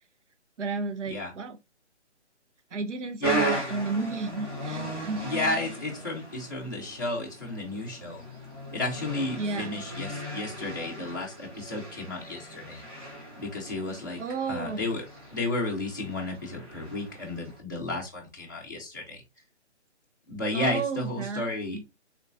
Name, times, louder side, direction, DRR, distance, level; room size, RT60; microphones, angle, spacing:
voice 1, 0.6-1.6 2.7-5.2 9.4-9.8 13.9-14.8 20.5-21.8, right 4 dB, 80° right, 0.8 m, -33 dB
voice 2, 3.2-3.6 5.2-8.2 8.7-12.8 13.4-14.2 14.5-15.0 15.3-19.2 20.3-21.8, left 2 dB, 15° left, 0.5 m, -32 dB
sound 1, 3.2-17.6, right 1 dB, 20° right, 1.1 m, -37 dB
3.7 x 2.6 x 2.4 m
hypercardioid pair, 170°, 35 cm